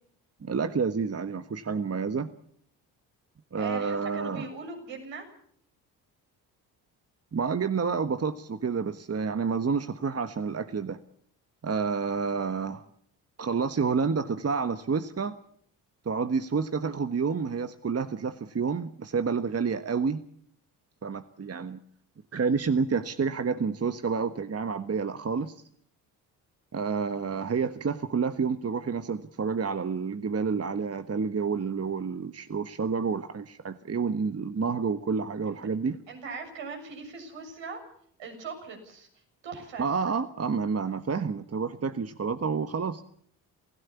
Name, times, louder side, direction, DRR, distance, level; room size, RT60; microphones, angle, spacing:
voice 1, 0.4-2.3 3.5-4.5 7.3-11.0 11.6-12.8 13.4-15.4 16.0-20.2 21.0-21.8 22.3-25.6 26.7-36.0 39.8-43.0, right 5 dB, 30° right, 10 dB, 1.4 m, -29 dB
voice 2, 3.6-5.3 12.3-12.7 27.5-27.6 35.5-35.6 36.1-37.8 38.2-39.1 39.4-39.9, right 4 dB, 70° right, 2 dB, 7.1 m, -40 dB
27.5 x 16.5 x 7.2 m, 0.64 s
hypercardioid pair, 45°, 46 cm